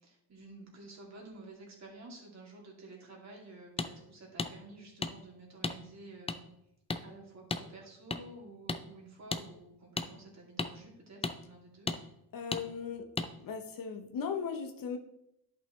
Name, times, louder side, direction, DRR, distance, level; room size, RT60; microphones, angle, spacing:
voice 1, 0.0-6.5 7.0-11.9, right 2 dB, 40° right, -1 dB, 2.6 m, -51 dB
sound 1, 3.8-3.9 4.4-4.5 5.0-5.1 5.6-5.8 6.3-6.4 6.9-7.0 7.5-7.6 8.1-8.2 8.7-8.8 9.3-9.4 10.0-10.1 10.6-10.7 11.2-11.4 11.9-12.0 12.5-12.6 13.2-13.3, left 3 dB, 15° left, 0.4 m, -33 dB
voice 2, 12.3-13.1 13.4-15.0, left 6 dB, 55° left, 6 dB, 0.9 m, -37 dB
10.5 x 5.6 x 3.2 m, 0.80 s
cardioid pair, 115°, 40 cm